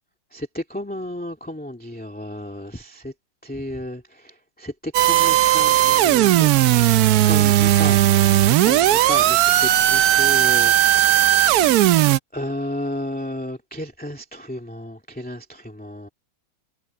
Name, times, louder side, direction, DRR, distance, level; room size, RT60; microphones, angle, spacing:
voice 1, 0.3-3.1 3.4-6.5 7.3-10.8 11.1-12.0 12.3-16.1, left 1 dB, 5° left, 2.1 m, -33 dB
sound 1, 4.9-12.2, right 13 dB, 85° right, 0.8 m, -16 dB
omnidirectional pair, 2.3 m